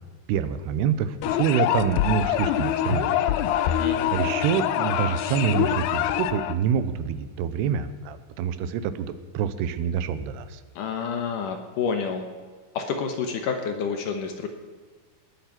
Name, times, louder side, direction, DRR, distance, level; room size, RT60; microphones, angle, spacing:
voice 1, 0.3-3.3 3.6-10.6, right 8 dB, 90° right, 12 dB, 2.9 m, -27 dB
sound 1, 1.2-6.6, left 11 dB, 85° left, 2.7 m, -25 dB
voice 2, 3.8-4.1 10.8-12.3 12.7-14.5, left 6 dB, 65° left, 6 dB, 2.4 m, -29 dB
19.5 x 8.2 x 6.0 m, 1.6 s
omnidirectional pair, 4.6 m